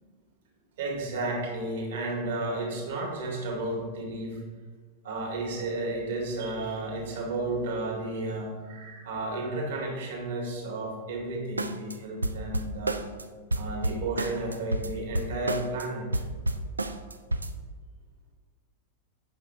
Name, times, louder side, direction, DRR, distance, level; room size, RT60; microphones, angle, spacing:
voice 1, 0.8-4.4 5.0-13.0 13.6-16.2, right 2 dB, 60° right, 0 dB, 2.1 m, -32 dB
sound 1, 11.6-11.9 12.2-13.2 13.5-15.8 16.1-17.5, right 2 dB, 80° right, 0.4 m, -30 dB
8.8 x 6.4 x 3.4 m, 1.5 s
figure-of-eight pair, 90°, 0 cm